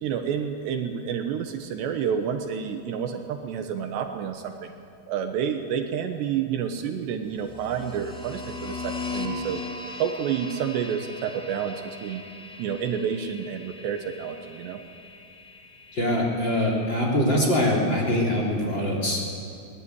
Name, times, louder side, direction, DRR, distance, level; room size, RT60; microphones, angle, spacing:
voice 1, 0.0-4.7 5.1-9.6 10.0-12.2 12.6-14.8, right 8 dB, 75° right, 5 dB, 3.1 m, -29 dB
sound 1, 7.4-16.2, left 3 dB, ahead, 1.2 m, -38 dB
voice 2, 15.9-19.3, left 1 dB, 25° left, -2 dB, 4.0 m, -23 dB
22.0 x 20.0 x 9.8 m, 2.5 s
omnidirectional pair, 5.5 m